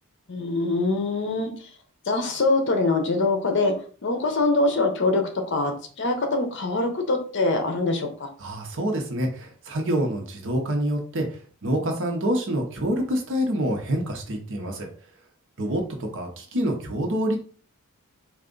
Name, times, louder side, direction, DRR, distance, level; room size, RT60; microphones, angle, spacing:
voice 1, 0.3-1.5 2.1-3.7 4.0-8.3, left 2 dB, 55° left, 5 dB, 0.7 m, -24 dB
voice 2, 8.4-14.9 15.6-17.4, right 1 dB, 60° right, 3 dB, 0.9 m, -27 dB
3.4 x 2.4 x 3.8 m, 0.43 s
head